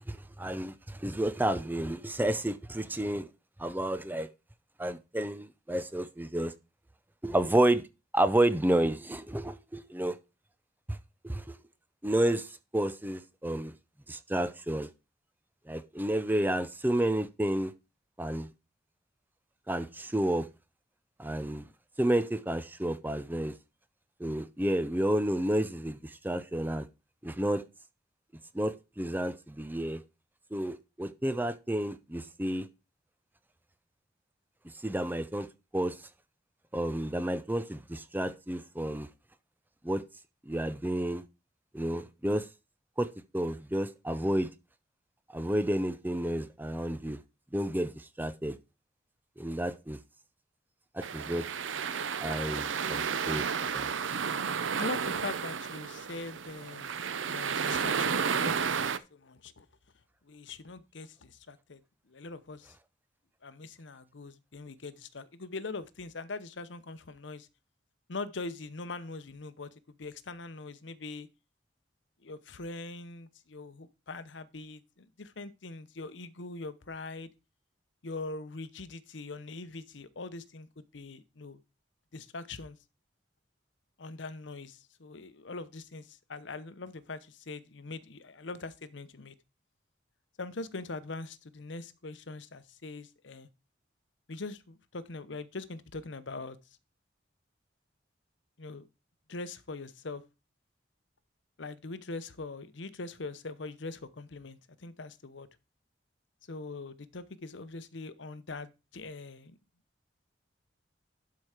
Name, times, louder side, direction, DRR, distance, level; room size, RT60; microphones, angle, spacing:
voice 1, 0.1-3.3 3.6-4.3 4.8-6.5 7.2-7.8 8.1-10.2 10.9-11.0 11.2-11.6 12.0-13.7 14.1-14.9 15.7-17.7 18.2-18.5 19.7-20.5 21.2-21.7 22.0-23.5 24.2-26.9 27.2-27.6 28.5-30.0 30.5-32.7 34.8-35.5 35.7-36.0 36.7-39.1 39.8-40.0 40.5-41.2 41.7-42.5 43.0-44.5 45.3-47.2 47.5-48.6 49.4-50.0 50.9-51.5 52.2-53.5 53.7-53.9, right 1 dB, 10° right, 0.5 m, -30 dB
sound 1, 51.0-59.0, right 6 dB, 85° right, 0.7 m, -32 dB
voice 2, 54.8-56.9 57.2-59.7 60.2-61.8 62.1-62.8 63.4-67.5 68.1-71.3 72.2-77.3 78.0-81.6 82.1-82.8 84.0-89.4 90.4-93.5 94.3-96.6 98.6-98.9 99.3-100.2 101.6-105.5 106.5-109.6, left 3 dB, 70° left, 0.8 m, -42 dB
12.0 x 4.7 x 4.9 m
head